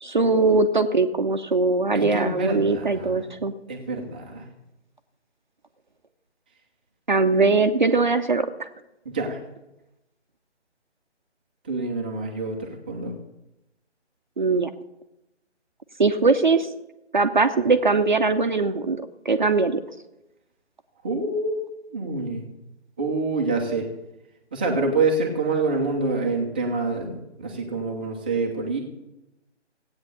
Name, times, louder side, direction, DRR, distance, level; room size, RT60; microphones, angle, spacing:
voice 1, 0.0-3.5 7.1-8.5 14.4-14.7 16.0-16.7 17.1-19.8, right 3 dB, 40° right, 7 dB, 0.8 m, -21 dB
voice 2, 1.9-3.3 3.7-4.4 9.0-9.4 11.6-13.1 21.0-21.6 21.9-22.4 23.0-23.9 24.5-28.8, right 3 dB, 10° right, -1 dB, 0.8 m, -26 dB
16.0 x 8.8 x 6.8 m, 0.94 s
figure-of-eight pair, 150°, 35 cm